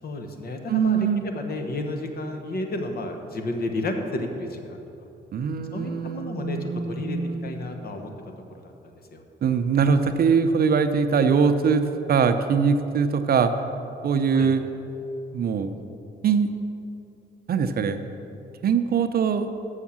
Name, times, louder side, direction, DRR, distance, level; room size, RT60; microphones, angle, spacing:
voice 1, 0.0-4.8 5.7-8.1 8.5-9.2 14.3-14.5, left 2 dB, 50° left, 5 dB, 1.2 m, -32 dB
voice 2, 0.7-1.2 5.3-7.6 9.4-13.5 14.0-14.6 15.3-15.7 16.2-16.5 17.5-18.0 18.6-19.5, right 6 dB, 50° right, 9 dB, 0.6 m, -22 dB
7.1 x 6.4 x 7.2 m, 2.8 s
cardioid pair, 90°, 20 cm